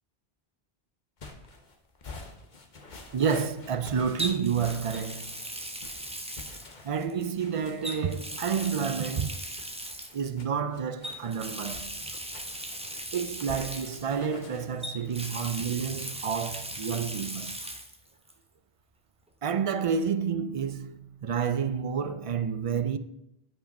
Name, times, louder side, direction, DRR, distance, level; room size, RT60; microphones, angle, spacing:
sound 1, 1.2-15.5, left 3 dB, 50° left, 1.2 m, -48 dB
Water tap faucet, 1.2-1.4 4.2-7.2 7.8-10.3 11.0-14.4 14.8-18.0 18.3-18.4 19.9-20.0, right 1 dB, 5° right, 0.7 m, -38 dB
voice 1, 3.1-5.3 6.8-9.4 10.1-12.0 13.1-17.6 19.4-23.0, right 6 dB, 55° right, 0.4 m, -29 dB
9.4 x 5.5 x 5.2 m
omnidirectional pair, 1.1 m